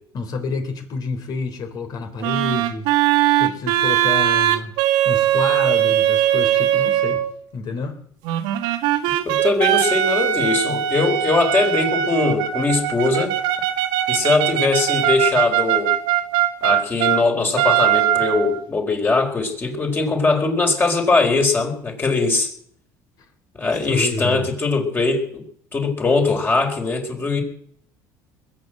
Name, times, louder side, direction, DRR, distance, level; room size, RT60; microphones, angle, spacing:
voice 1, 0.1-2.9 3.4-4.7 5.0-7.2 7.5-8.0 23.9-24.5, left 4 dB, 50° left, 5 dB, 3.7 m, -28 dB
sound 1, 2.2-7.3 8.2-17.2 17.6-18.6, right 12 dB, 80° right, 1.7 m, -20 dB
voice 2, 9.2-13.3 14.1-15.9 16.6-22.5 23.5-25.4 25.7-27.4, left 3 dB, 25° left, 2 dB, 4.4 m, -21 dB
21.0 x 8.3 x 7.9 m, 0.63 s
supercardioid pair, 100°, 8 cm